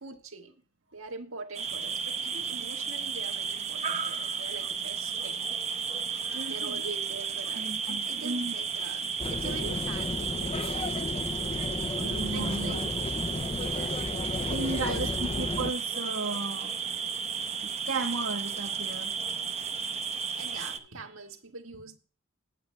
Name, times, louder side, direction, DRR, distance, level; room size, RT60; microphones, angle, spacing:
voice 1, 0.0-0.6 0.9-5.5 6.1-11.6 12.0-12.9 13.1-13.3 13.7-14.0 14.4-15.4 20.1-22.0, right 3 dB, 85° right, 1.6 m, -44 dB
sound 1, 1.5-20.8, right 6 dB, 30° right, 0.9 m, -33 dB
voice 2, 5.9-6.8 7.6-8.5 12.0-12.9 14.5-16.7 17.6-19.1, right 3 dB, 70° right, 1.1 m, -35 dB
sound 2, 9.2-15.7, left 3 dB, 30° left, 0.4 m, -33 dB
19.5 x 7.8 x 2.2 m
head